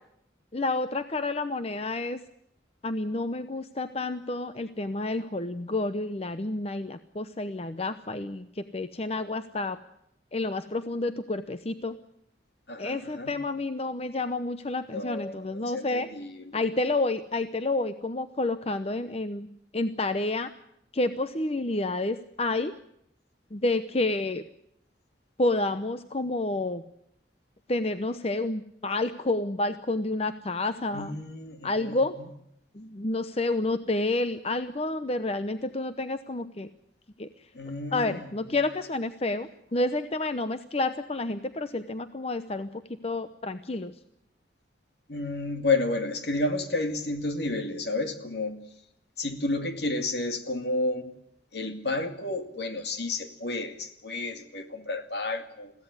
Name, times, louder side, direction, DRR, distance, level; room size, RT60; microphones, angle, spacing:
voice 1, 0.5-2.2 2.8-9.8 10.3-11.9 12.8-16.1 16.5-19.5 19.7-20.5 20.9-22.8 23.5-24.4 25.4-26.8 27.7-31.2 31.6-32.1 32.7-36.7 37.2-37.3 37.9-43.9, left 2 dB, 35° left, 0.8 m, -29 dB
voice 2, 12.7-13.4 14.9-16.6 30.9-32.0 37.5-38.6 45.1-48.6 49.2-51.2 51.5-55.7, left 2 dB, 65° left, 2.3 m, -31 dB
22.0 x 16.0 x 9.7 m
head